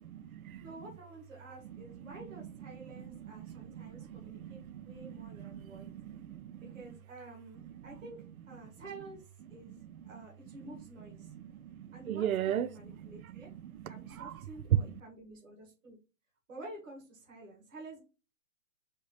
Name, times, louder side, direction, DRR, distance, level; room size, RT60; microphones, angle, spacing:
voice 1, 0.0-0.6 3.0-6.8 9.7-10.0 11.3-13.2 13.5-14.3, right 10 dB, 90° right, 0.5 m, -40 dB
voice 2, 0.6-5.9 6.6-11.3 11.9-13.5 13.9-16.0 16.5-18.0, right 2 dB, 65° right, 1.9 m, -50 dB
4.2 x 3.3 x 3.1 m
hypercardioid pair, 165°, 41 cm